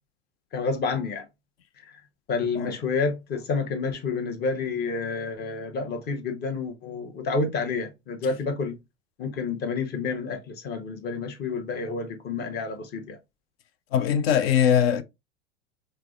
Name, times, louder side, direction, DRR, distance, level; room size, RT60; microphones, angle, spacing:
voice 1, 0.5-1.3 1.8-2.0 2.3-8.8 9.2-13.2, left 4 dB, 30° left, 0.9 m, -29 dB
voice 2, 13.9-15.0, left 9 dB, 55° left, 0.5 m, -21 dB
4.7 x 2.1 x 2.3 m
figure-of-eight pair, 90°, 35 cm